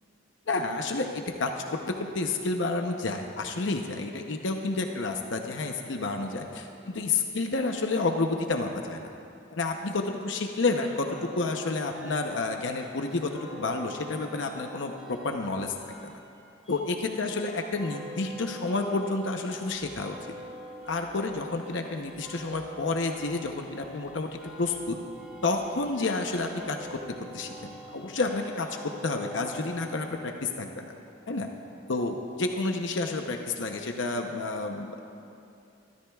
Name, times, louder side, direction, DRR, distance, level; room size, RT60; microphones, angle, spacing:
voice 1, 0.5-9.1 9.5-16.2 16.7-20.3 20.9-25.0 25.4-30.8 31.3-31.5 31.9-35.0, left 3 dB, 70° left, 3 dB, 0.8 m, -30 dB
sound 1, 10.7-30.3, equal, 5° right, 2.2 m, -46 dB
23.5 x 13.5 x 2.4 m, 2.6 s
head